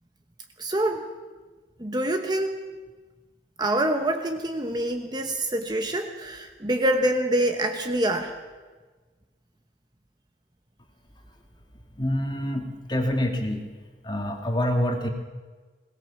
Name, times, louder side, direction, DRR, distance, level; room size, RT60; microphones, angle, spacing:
voice 1, 0.6-1.1 1.8-2.5 3.6-8.3, right 1 dB, 20° right, 5 dB, 1.0 m, -25 dB
voice 2, 11.9-13.7 14.0-15.1, left 1 dB, 25° left, 3 dB, 2.0 m, -26 dB
21.5 x 18.0 x 7.1 m, 1.3 s
head